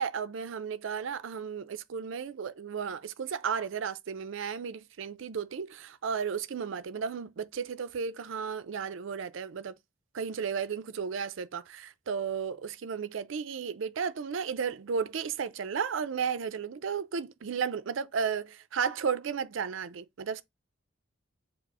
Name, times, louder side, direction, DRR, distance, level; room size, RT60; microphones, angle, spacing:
voice 1, 0.0-9.7 10.1-20.4, right 6 dB, 70° right, 0.4 m, -34 dB
4.7 x 2.0 x 4.7 m
head